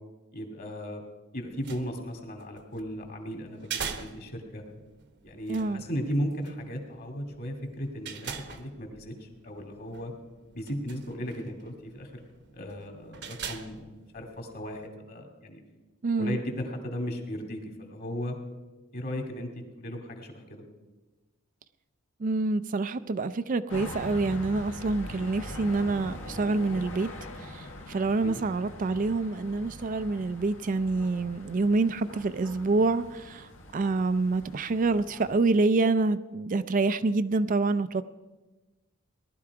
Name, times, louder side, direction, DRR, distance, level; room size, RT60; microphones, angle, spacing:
voice 1, 0.3-1.0 1.3-4.6 5.2-10.1 10.5-12.3 12.5-15.6 16.2-18.4 18.9-20.6 28.2-28.4, equal, 45° left, 3 dB, 2.4 m, -36 dB
sound 1, 1.4-14.9, right 6 dB, 55° right, 1.0 m, -44 dB
voice 2, 5.5-5.8 16.0-16.4 22.2-38.0, right 3 dB, 40° right, 12 dB, 0.4 m, -27 dB
sound 2, 23.7-35.4, left 1 dB, 65° left, 1.7 m, -43 dB
18.5 x 12.0 x 4.8 m, 1.2 s
head